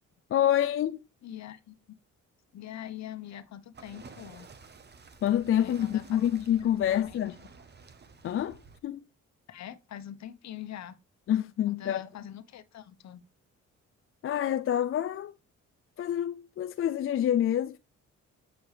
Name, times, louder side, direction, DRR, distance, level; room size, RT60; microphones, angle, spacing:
voice 1, 0.3-1.0 5.2-7.3 8.2-8.6 8.8-9.0 11.3-12.0 14.2-15.3 16.0-17.8, left 11 dB, 45° left, 0.4 m, -27 dB
voice 2, 1.2-2.0 2.5-4.5 5.6-6.2 6.9-7.2 9.5-11.0 11.6-13.2, left 11 dB, 65° left, 1.1 m, -43 dB
sound 1, 3.7-8.8, right 4 dB, 35° right, 1.0 m, -52 dB
8.7 x 6.2 x 3.3 m
cardioid pair, 90°, 30 cm